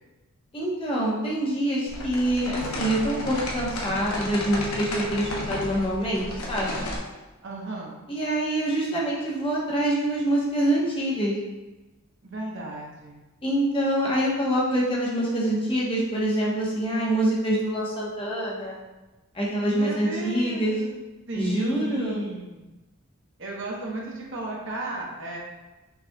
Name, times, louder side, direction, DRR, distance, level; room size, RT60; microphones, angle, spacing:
voice 1, 0.5-6.8 8.1-11.4 13.4-18.8 19.3-20.8 21.4-22.3, right 1 dB, 25° left, -5 dB, 1.0 m, -25 dB
sound 1, 1.9-7.0, left 1 dB, 85° left, 1.0 m, -33 dB
voice 2, 7.4-8.0 12.2-13.2 19.7-20.9 21.3-22.6 23.4-25.4, right 2 dB, 60° right, -3 dB, 1.0 m, -34 dB
5.5 x 4.2 x 2.3 m, 1.1 s
head